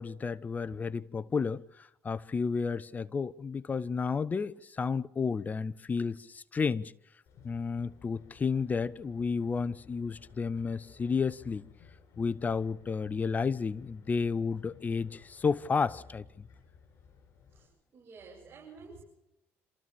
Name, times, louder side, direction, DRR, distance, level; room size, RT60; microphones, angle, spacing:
voice 1, 0.0-6.9 7.4-11.7 12.2-16.3, left 5 dB, 30° left, 0.9 m, -32 dB
sound 1, 7.3-17.7, left 6 dB, 60° left, 6.7 m, -56 dB
voice 2, 17.5-19.0, right 4 dB, 40° right, 7.5 m, -51 dB
27.5 x 14.5 x 7.0 m
supercardioid pair, 80°, 5 cm